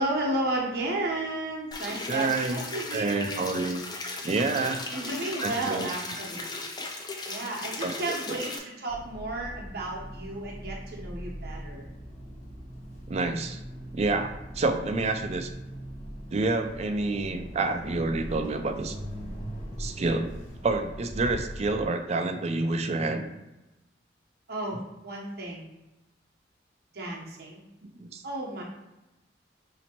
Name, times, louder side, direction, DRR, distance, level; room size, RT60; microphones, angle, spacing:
voice 1, 0.0-3.5 4.9-6.6 7.2-11.9 24.5-25.7 26.9-27.6 28.2-28.6, right 2 dB, 60° right, -3 dB, 0.9 m, -33 dB
sound 1, 1.7-8.6, left 2 dB, 25° left, 0.5 m, -37 dB
voice 2, 2.1-2.6 2.9-3.8 4.2-4.8 5.4-5.9 7.8-8.2 13.1-13.6 13.9-15.5 16.3-19.0 19.8-23.3 28.0-28.2, right 3 dB, 35° right, 6 dB, 0.4 m, -28 dB
sound 2, 8.9-21.9, equal, 45° left, 1.0 m, -40 dB
5.1 x 2.8 x 2.9 m, 0.97 s
head